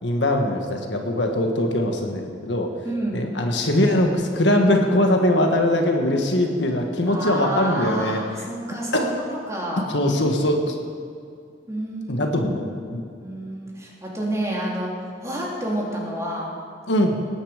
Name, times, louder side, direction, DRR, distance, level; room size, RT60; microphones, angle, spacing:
voice 1, 0.0-2.7 3.1-8.2 8.9-9.1 9.9-10.7 12.1-12.6 12.9-13.0 16.9-17.2, left 1 dB, 75° left, 3 dB, 1.6 m, -21 dB
voice 2, 2.8-3.3 7.1-9.9 11.7-12.3 12.6-12.8 13.2-16.5, right 1 dB, 15° right, -4 dB, 3.1 m, -29 dB
19.0 x 10.0 x 5.1 m, 2.3 s
head